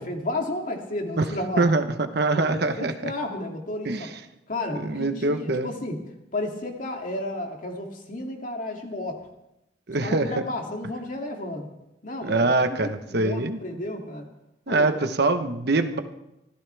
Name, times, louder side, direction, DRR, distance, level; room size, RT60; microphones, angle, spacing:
voice 1, 0.0-1.8 2.3-4.1 4.5-6.0 6.3-9.3 10.0-11.7 12.0-14.3 14.7-15.0, left 1 dB, 45° left, 1 dB, 2.6 m, -32 dB
voice 2, 1.6-3.1 3.8-4.1 4.7-5.7 9.9-10.5 12.2-13.6 14.7-16.0, right 2 dB, 60° right, 8 dB, 1.1 m, -24 dB
25.5 x 16.0 x 3.5 m, 0.90 s
head